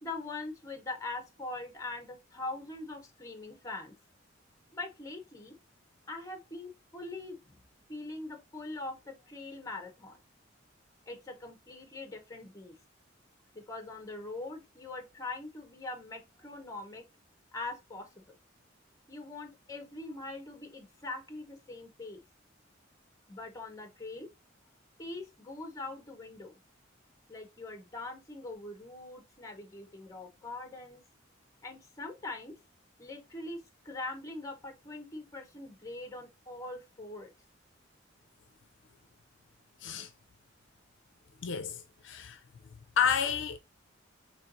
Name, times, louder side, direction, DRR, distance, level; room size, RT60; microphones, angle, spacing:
voice 1, 0.0-3.9 4.7-5.5 6.1-7.6 7.9-10.2 11.1-12.7 13.5-17.0 17.5-18.4 19.1-22.2 23.3-24.3 25.0-26.5 27.3-31.0 31.6-32.5 33.0-37.3, left 2 dB, 15° left, 0.8 m, -42 dB
voice 2, 41.4-42.4 43.0-43.6, left 7 dB, 65° left, 0.4 m, -30 dB
4.4 x 2.9 x 2.5 m
head